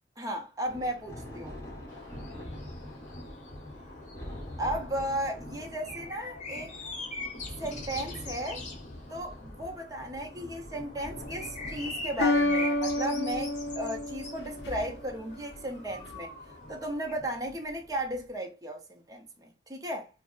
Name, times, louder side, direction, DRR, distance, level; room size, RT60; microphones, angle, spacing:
voice 1, 0.2-1.6 4.6-6.7 7.6-8.6 9.1-16.3 16.7-20.1, right 1 dB, 20° right, 0.6 m, -35 dB
Thunder, 0.6-18.3, left 1 dB, 15° left, 1.1 m, -45 dB
sound 1, 1.9-17.2, left 2 dB, 40° left, 0.9 m, -43 dB
sound 2, 11.0-11.5 12.2-15.1, left 2 dB, 65° left, 0.5 m, -30 dB
5.7 x 2.0 x 2.4 m
head